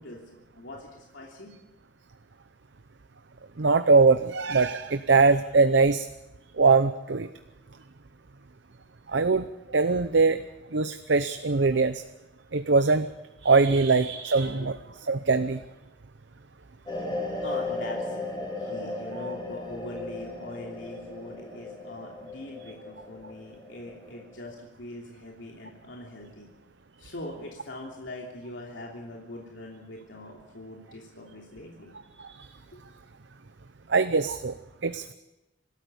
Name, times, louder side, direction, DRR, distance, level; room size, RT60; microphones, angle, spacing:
voice 1, 0.0-1.5 14.6-14.7 17.4-18.3 18.6-26.5 27.0-31.9 32.7-32.8, left 1 dB, 75° left, -1 dB, 3.1 m, -42 dB
voice 2, 3.6-6.1 6.6-7.3 9.1-10.4 10.7-12.0 12.5-13.1 13.4-14.8 15.1-15.6 19.2-19.3 32.2-32.5 33.9-34.5 34.8-35.1, right 4 dB, 70° right, 10 dB, 0.7 m, -22 dB
sound 1, 16.9-24.5, left 2 dB, 25° left, 7.6 m, -36 dB
26.0 x 13.5 x 8.1 m, 1.0 s
head